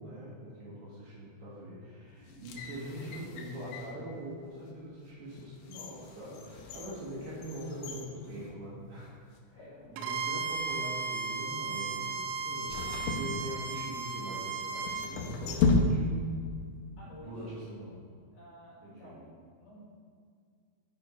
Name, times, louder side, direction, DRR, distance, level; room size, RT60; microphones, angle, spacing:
voice 1, 0.0-9.2 9.5-9.6 9.9-16.0 17.0-18.0 18.8-19.1, equal, 60° right, -7 dB, 3.7 m, -43 dB
voice 2, 2.1-2.5 6.6-7.2 9.5-10.3 17.0-17.3 18.3-19.3 19.6-19.8, equal, 55° left, -7 dB, 3.6 m, -53 dB
sound 1, 2.2-4.0 4.6-4.7 5.3-9.1 9.4-9.5 10.3-10.7 12.7-14.0 14.8-16.4 16.6-16.7, left 3 dB, 80° left, 2.6 m, -33 dB
Bowed string instrument, 10.0-15.1, right 4 dB, 85° right, 3.3 m, -35 dB
9.8 x 5.0 x 5.1 m, 2.1 s
omnidirectional pair, 5.7 m